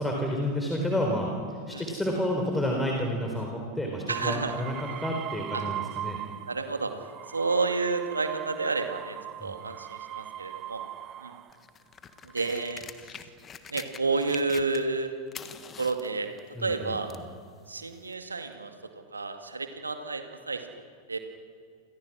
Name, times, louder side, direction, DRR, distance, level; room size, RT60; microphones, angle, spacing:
voice 1, 0.0-6.2 9.4-9.6 16.5-17.2, equal, 5° left, 0 dB, 4.1 m, -30 dB
sound 1, 4.1-6.6 7.0-11.5 12.3-12.9, right 12 dB, 30° right, 1.0 m, -39 dB
voice 2, 4.1-4.5 5.5-5.6 6.5-6.9 7.3-10.8 11.2-11.4 12.2-12.8 13.7-15.1 15.8-16.3 16.6-17.1 17.7-18.7 19.1-20.7 21.1-21.2, right 3 dB, 75° right, 6 dB, 2.2 m, -30 dB
sound 2, 11.5-15.0 15.3-17.3 18.1-18.2, left 7 dB, 25° left, 1.5 m, -45 dB
29.5 x 27.5 x 6.2 m, 2.3 s
figure-of-eight pair, 90°, 0 cm